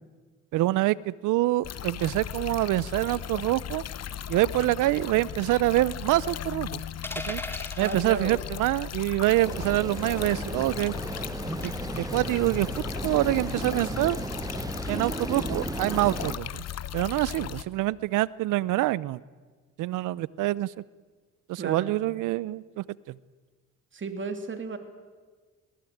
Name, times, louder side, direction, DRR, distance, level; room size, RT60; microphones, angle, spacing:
voice 1, 0.5-3.8 4.3-6.8 7.3-7.4 7.8-10.9 11.6-12.7 13.0-14.2 14.9-16.6 16.9-19.2 19.8-20.7 21.5-23.2, right 17 dB, 90° right, 21 dB, 0.7 m, -26 dB
sound 1, 1.6-17.6, left 10 dB, 55° left, 1.0 m, -37 dB
sound 2, 7.0-8.0 9.6-9.9 11.6-12.0, left 1 dB, 5° left, 2.3 m, -37 dB
voice 2, 7.8-8.4 21.6-21.9 23.9-24.8, right 4 dB, 40° right, 7 dB, 2.9 m, -33 dB
sound 3, 9.4-16.4, right 3 dB, 10° right, 0.7 m, -35 dB
21.5 x 18.5 x 9.3 m, 1.4 s
cardioid pair, 90°, 30 cm